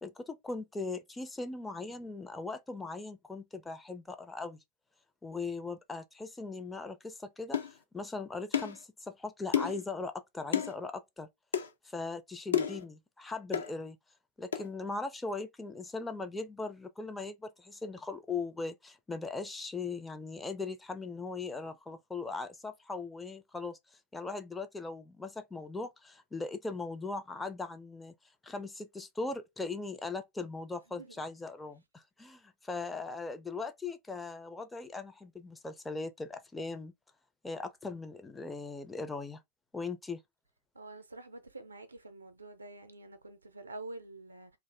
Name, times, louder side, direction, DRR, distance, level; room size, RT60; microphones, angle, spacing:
voice 1, 0.0-4.6 5.2-7.6 7.9-11.3 11.8-14.0 14.4-23.8 24.1-28.1 28.4-36.9 37.4-39.4 39.7-40.2, left 3 dB, 10° left, 0.4 m, -39 dB
sound 1, 7.5-7.7 8.5-8.8 9.5-9.8 10.5-10.7 11.5-11.7 12.5-12.8 13.5-13.7 14.5-14.7, left 8 dB, 70° left, 0.5 m, -30 dB
voice 2, 40.7-44.5, right 2 dB, 80° right, 0.5 m, -47 dB
2.5 x 2.4 x 3.2 m
figure-of-eight pair, 90°, 0 cm